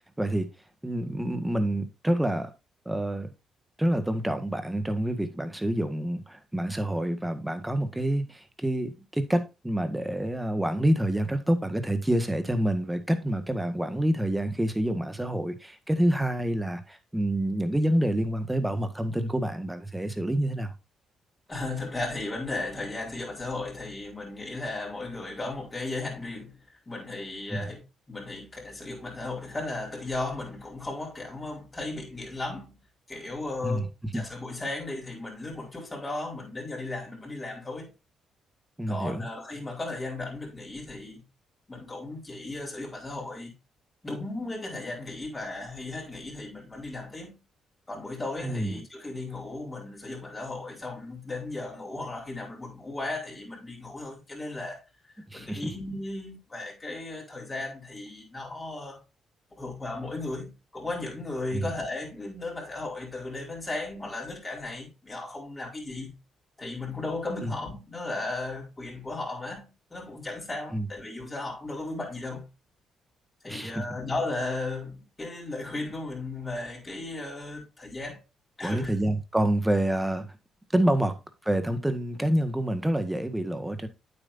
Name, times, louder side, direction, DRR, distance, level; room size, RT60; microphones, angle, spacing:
voice 1, 0.2-0.5 0.8-2.5 2.9-3.3 3.8-20.7 27.5-27.7 33.6-33.9 34.1-34.2 38.8-39.3 48.4-48.8 55.3-55.7 61.5-61.7 67.4-67.5 70.7-70.9 73.5-73.8 78.6-80.4 80.7-81.2 81.4-83.9, right 1 dB, 10° right, 1.6 m, -27 dB
voice 2, 21.5-27.8 28.1-32.8 33.1-33.9 34.1-37.9 38.9-41.2 41.7-43.5 44.0-47.4 47.9-54.8 55.3-59.0 59.5-66.1 66.6-72.4 73.4-78.2 78.6-78.9, left 2 dB, 20° left, 4.7 m, -35 dB
8.9 x 7.9 x 2.7 m
cardioid pair, 90°, 0 cm